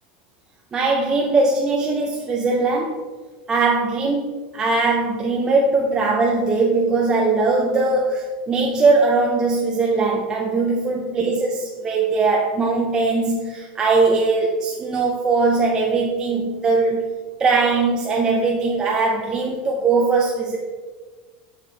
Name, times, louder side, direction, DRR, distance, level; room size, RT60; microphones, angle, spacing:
voice 1, 0.7-3.0 3.5-17.0 17.4-20.6, right 3 dB, 15° right, -1 dB, 0.5 m, -20 dB
7.5 x 5.8 x 3.2 m, 1.4 s
supercardioid pair, 170°, 5 cm